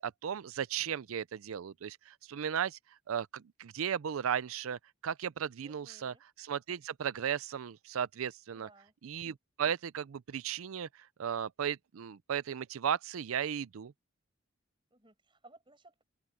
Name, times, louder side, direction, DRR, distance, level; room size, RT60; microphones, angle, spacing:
voice 1, 0.0-2.8 3.1-8.7 9.0-13.9, right 8 dB, 85° right, 0.4 m, -36 dB
voice 2, 5.6-6.2 8.5-8.9 14.9-16.0, right 2 dB, 25° right, 6.6 m, -59 dB
head